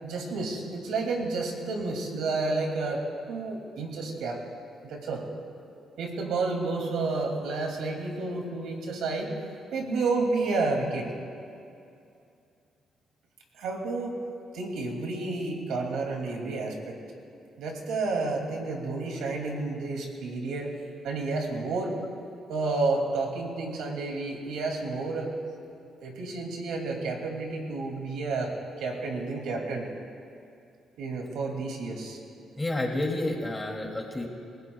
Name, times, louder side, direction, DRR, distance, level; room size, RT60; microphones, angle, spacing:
voice 1, 0.0-3.0 3.3-4.4 4.8-5.2 6.0-9.3 9.7-11.1 13.6-14.1 14.5-17.0 17.6-20.7 21.0-22.0 22.5-25.3 26.0-28.5 28.8-29.9 31.0-32.2, right 3 dB, 85° right, 1 dB, 2.6 m, -30 dB
voice 2, 32.6-34.3, left 1 dB, 15° left, 0 dB, 2.7 m, -30 dB
29.0 x 17.0 x 2.4 m, 2.6 s
cardioid pair, 90°, 0 cm